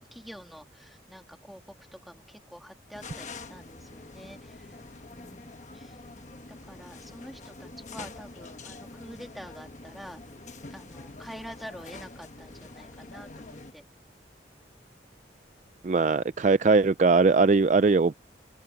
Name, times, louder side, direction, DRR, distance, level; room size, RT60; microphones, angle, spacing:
voice 1, 0.0-4.8 5.1-6.0 6.5-10.2 10.7-13.9, equal, ahead, 2.8 m, -47 dB
sound 1, 2.9-13.7, left 3 dB, 40° left, 1.2 m, -45 dB
voice 2, 15.8-18.1, right 4 dB, 40° right, 0.4 m, -20 dB
head